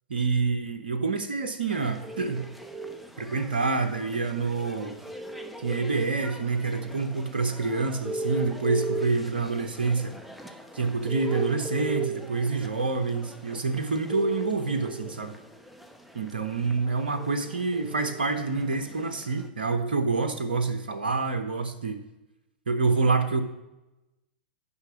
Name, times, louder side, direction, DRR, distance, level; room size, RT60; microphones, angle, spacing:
voice 1, 0.1-2.5 3.2-5.0 5.6-10.2 10.7-15.3 16.1-22.0 22.7-23.4, right 4 dB, 80° right, 7 dB, 0.9 m, -27 dB
sound 1, 1.7-19.5, right 3 dB, ahead, 0.9 m, -38 dB
9.8 x 5.8 x 5.8 m, 1.0 s
hypercardioid pair, 105°, 5 cm